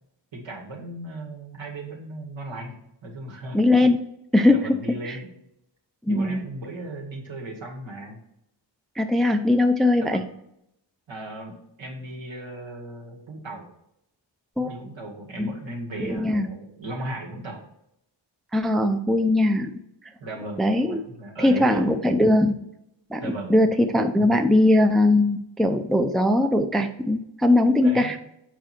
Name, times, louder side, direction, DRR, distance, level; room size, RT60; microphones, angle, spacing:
voice 1, 0.3-2.8 3.0-3.6 4.5-5.3 6.1-8.2 10.0-10.2 11.1-13.7 14.6-17.6 20.2-22.0 23.2-23.6 27.8-28.2, right 2 dB, 75° right, 0 dB, 2.2 m, -36 dB
voice 2, 3.5-4.0 4.3-5.2 6.1-6.5 9.0-10.2 14.6-14.8 15.4-15.5 16.0-16.5 18.5-19.7 20.6-21.0 21.4-22.5 23.1-23.2 23.5-28.2, left 1 dB, ahead, 6 dB, 0.5 m, -20 dB
7.4 x 5.0 x 4.4 m, 0.79 s
wide cardioid pair, 105°, 46 cm